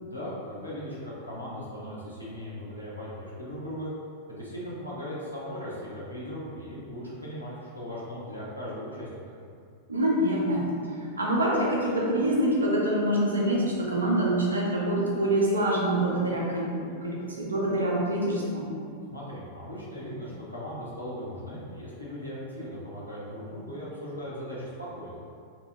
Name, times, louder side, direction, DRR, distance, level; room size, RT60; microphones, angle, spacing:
voice 1, 0.0-3.9 4.3-9.3 19.1-25.2, equal, 90° left, -8 dB, 0.7 m, -38 dB
voice 2, 9.9-18.7, right 1 dB, 75° right, -3 dB, 0.5 m, -26 dB
2.8 x 2.6 x 2.3 m, 2.3 s
figure-of-eight pair, 90°, 0 cm